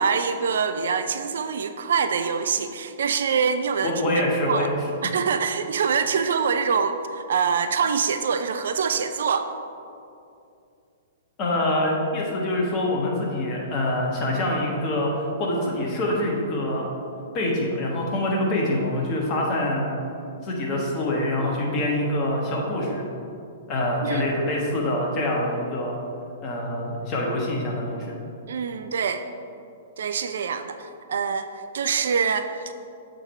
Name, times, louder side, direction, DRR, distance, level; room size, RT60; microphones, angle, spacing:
voice 1, 0.0-4.1 4.5-4.7 5.0-9.5 24.0-24.3 28.5-29.2 30.0-31.5 31.7-32.7, right 6 dB, 60° right, 9 dB, 0.4 m, -25 dB
voice 2, 3.8-4.7 11.4-16.9 17.3-20.0 20.4-23.0 23.7-26.0 26.4-28.1, left 1 dB, 35° left, -2 dB, 1.3 m, -25 dB
7.1 x 5.2 x 4.3 m, 2.5 s
figure-of-eight pair, 110°, 0 cm